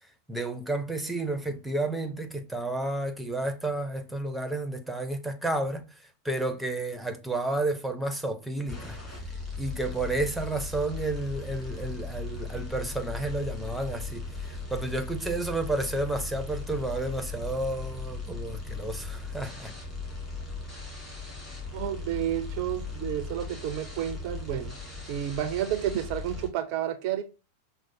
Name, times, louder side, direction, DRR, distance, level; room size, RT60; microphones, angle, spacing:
voice 1, 0.3-9.0 9.6-19.7, right 2 dB, ahead, 0.6 m, -31 dB
sound 1, 8.7-26.5, left 3 dB, 15° left, 1.8 m, -38 dB
voice 2, 21.7-24.8 25.1-27.2, right 11 dB, 45° right, 0.4 m, -31 dB
6.2 x 2.1 x 2.6 m
figure-of-eight pair, 90°, 0 cm